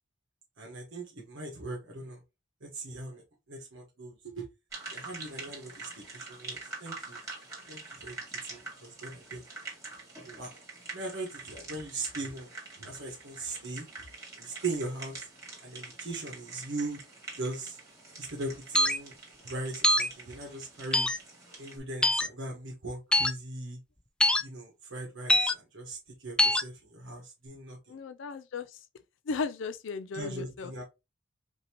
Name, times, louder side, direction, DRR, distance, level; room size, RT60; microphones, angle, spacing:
voice 1, 0.6-2.2 2.6-3.2 3.5-4.4 4.9-7.2 7.7-8.2 8.4-9.4 10.2-10.5 10.9-12.5 12.8-13.9 14.4-15.3 15.6-17.0 17.4-17.8 18.2-19.2 19.4-21.1 21.6-23.8 24.4-28.0 30.1-30.8, right 2 dB, 85° right, 1.4 m, -39 dB
sound 1, 4.7-21.8, right 3 dB, 15° right, 2.0 m, -45 dB
sound 2, 18.8-19.0 19.8-20.1 20.9-21.2 22.0-22.3 23.1-23.3 24.2-24.4 25.3-25.5 26.4-26.6, left 1 dB, 5° left, 0.3 m, -23 dB
voice 2, 27.9-28.8 29.3-30.8, left 4 dB, 75° left, 0.4 m, -36 dB
5.2 x 2.8 x 2.9 m
head